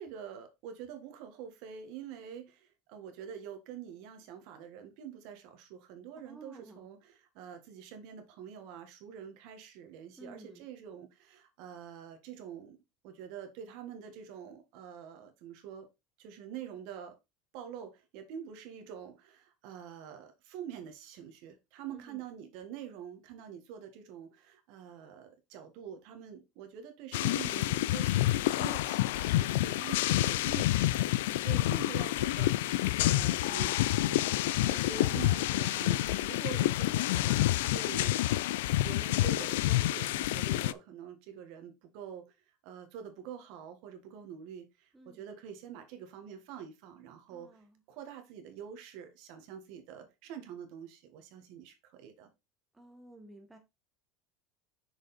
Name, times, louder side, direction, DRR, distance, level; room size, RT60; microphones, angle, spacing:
voice 1, 0.0-12.8 13.0-15.9 16.2-17.2 17.5-34.2 34.6-37.4 37.7-38.2 38.8-42.3 42.6-47.6 47.9-52.3, right 8 dB, 50° right, 1.6 m, -46 dB
voice 2, 6.2-6.9 10.2-10.7 21.9-22.2 29.8-30.4 44.9-45.3 47.3-47.8 52.7-53.6, right 1 dB, 5° right, 0.9 m, -53 dB
sound 1, 27.1-40.7, left 15 dB, 90° left, 0.4 m, -28 dB
6.3 x 4.9 x 4.1 m
cardioid pair, 170°, 0 cm